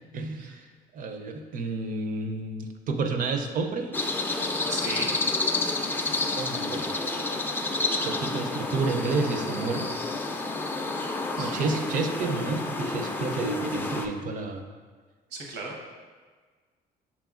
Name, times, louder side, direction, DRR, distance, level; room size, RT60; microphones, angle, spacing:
voice 1, 0.1-0.6 0.9-3.9 6.1-6.9 8.0-10.0 11.4-14.6, right 3 dB, 55° right, 6 dB, 0.5 m, -30 dB
sound 1, 3.9-14.1, left 3 dB, 10° left, 0.3 m, -29 dB
voice 2, 4.7-5.1 11.4-11.8 15.3-15.8, right 3 dB, 80° right, -1 dB, 0.9 m, -36 dB
6.0 x 3.6 x 2.4 m, 1.5 s
cardioid pair, 110°, 17 cm